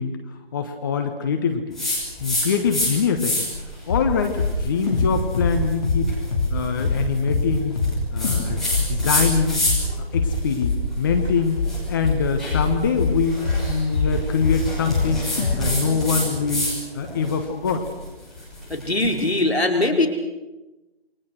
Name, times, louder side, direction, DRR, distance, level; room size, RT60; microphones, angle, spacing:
voice 1, 0.0-1.8 2.2-3.5 3.9-6.1 6.5-7.8 8.1-9.6 10.1-11.6 11.9-13.4 13.7-15.3 15.6-16.7 16.9-17.8, left 6 dB, 20° left, 6 dB, 1.4 m, -24 dB
sound 1, 1.8-2.9 3.2-3.7 4.2-10.0 10.3-16.8 17.1-19.3, left 1 dB, ahead, 6.1 m, -28 dB
sound 2, 3.5-3.6 3.9-4.1 4.4-6.5 6.8-7.0 7.3-7.5 7.8-8.0 8.2-8.5 8.7-14.2 14.4-15.1 15.4-15.6, left 4 dB, 35° left, 5.4 m, -23 dB
voice 2, 18.7-20.1, left 2 dB, 80° left, 4 dB, 5.0 m, -21 dB
28.5 x 24.5 x 6.4 m, 1.1 s
figure-of-eight pair, 150°, 31 cm